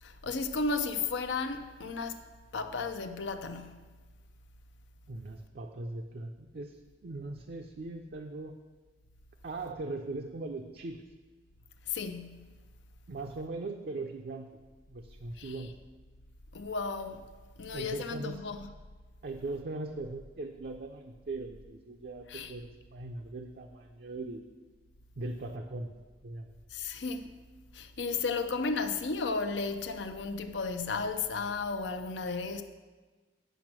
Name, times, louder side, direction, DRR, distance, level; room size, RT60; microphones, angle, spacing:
voice 1, 0.0-2.2 2.5-3.8 11.9-12.5 15.4-15.5 16.5-17.3 17.6-18.7 22.3-22.5 26.7-27.3 27.7-32.6, left 4 dB, 85° left, 0.6 m, -34 dB
voice 2, 5.1-6.8 7.0-8.5 9.4-11.0 13.1-14.6 14.9-15.7 17.7-18.5 19.2-24.5 25.2-25.9 26.2-26.5, right 2 dB, 60° right, 0.5 m, -39 dB
9.1 x 5.2 x 6.0 m
head